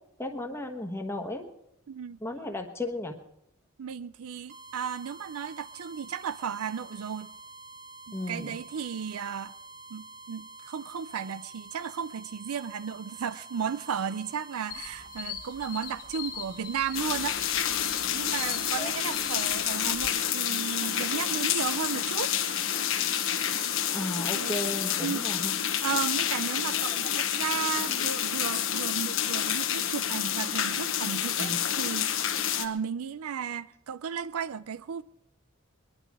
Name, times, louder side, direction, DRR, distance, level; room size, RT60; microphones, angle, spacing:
voice 1, 0.2-1.5 2.2-3.1 8.1-8.6 18.8-18.9 23.9-25.5 26.9-27.0 31.4-31.6, left 1 dB, 10° left, 1.1 m, -34 dB
voice 2, 1.9-2.2 3.8-7.3 8.1-9.5 9.9-17.8 18.1-22.3 24.3-24.6 25.0-25.2 25.8-32.2 32.6-35.0, right 7 dB, 85° right, 0.5 m, -34 dB
sound 1, 4.5-24.0, right 3 dB, 55° right, 1.9 m, -48 dB
sound 2, 14.7-20.1, left 8 dB, 45° left, 1.3 m, -42 dB
sound 3, 16.9-32.7, left 10 dB, 65° left, 1.1 m, -29 dB
21.0 x 11.5 x 4.8 m
head